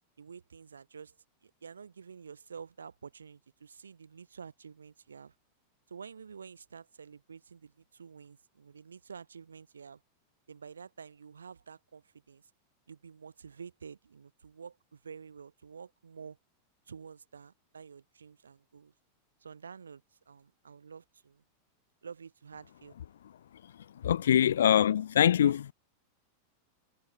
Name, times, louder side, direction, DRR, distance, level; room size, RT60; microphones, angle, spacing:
voice 1, 0.2-1.2 1.4-5.3 5.9-10.0 10.5-12.4 12.9-16.4 16.9-18.9 19.4-21.4 22.0-23.0, right 6 dB, 70° right, 3.3 m, -49 dB
voice 2, 24.0-25.7, left 10 dB, 65° left, 0.3 m, -24 dB
figure-of-eight pair, 90°, 0 cm